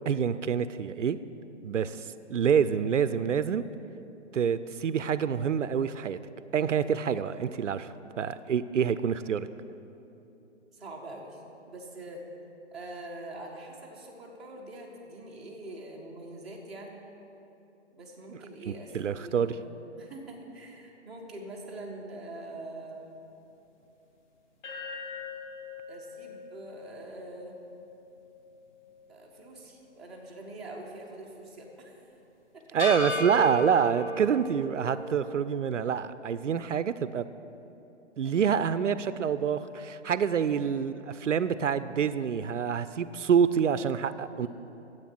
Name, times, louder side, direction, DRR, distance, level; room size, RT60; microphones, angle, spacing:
voice 1, 0.1-1.2 1.6-2.0 2.3-3.6 4.3-6.2 6.5-9.5 18.3-18.4 18.7-19.5 32.7-37.3 38.2-44.5, right 7 dB, 85° right, 14 dB, 0.5 m, -27 dB
voice 2, 10.7-11.4 11.7-12.2 12.7-17.0 17.9-23.1 25.9-27.6 29.1-32.0 32.5-32.6 38.2-38.4 40.3-40.8 44.4-44.5, right 2 dB, ahead, -8 dB, 0.6 m, -44 dB
sound 1, 24.6-28.9 29.3-29.4 32.8-35.4, left 2 dB, 40° left, 1.3 m, -37 dB
10.5 x 7.9 x 5.9 m, 3.0 s
figure-of-eight pair, 140°, 36 cm